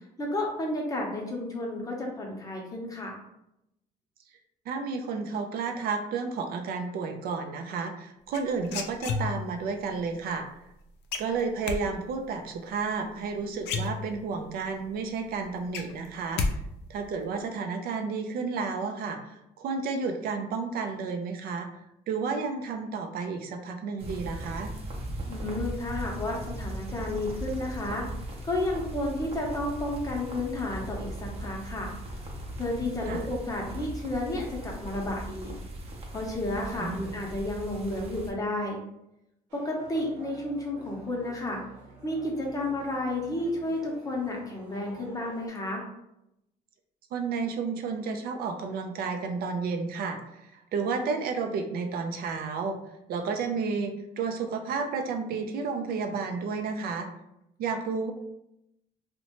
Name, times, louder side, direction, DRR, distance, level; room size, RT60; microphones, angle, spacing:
voice 1, 0.2-3.2 25.3-28.1 28.4-31.9 32.6-35.5 36.1-38.8 39.5-41.6 42.0-45.8, left 1 dB, 20° left, -1 dB, 0.7 m, -32 dB
voice 2, 4.7-10.5 11.2-16.6 16.9-21.7 22.1-24.7 33.1-33.2 36.8-37.2 47.1-52.8 53.1-57.1 57.6-58.1, right 5 dB, 65° right, 5 dB, 0.4 m, -32 dB
sound 1, 8.3-9.6 11.1-11.8 13.2-13.3 13.6-14.4 14.8-14.9 15.3-16.5 16.8-17.2, left 4 dB, 80° left, 0.4 m, -31 dB
sound 2, 24.0-38.3, right 1 dB, 35° right, 0.7 m, -38 dB
sound 3, 39.5-45.5, right 1 dB, 90° right, 0.8 m, -49 dB
2.7 x 2.1 x 2.9 m, 0.84 s
cardioid pair, 110°, 17 cm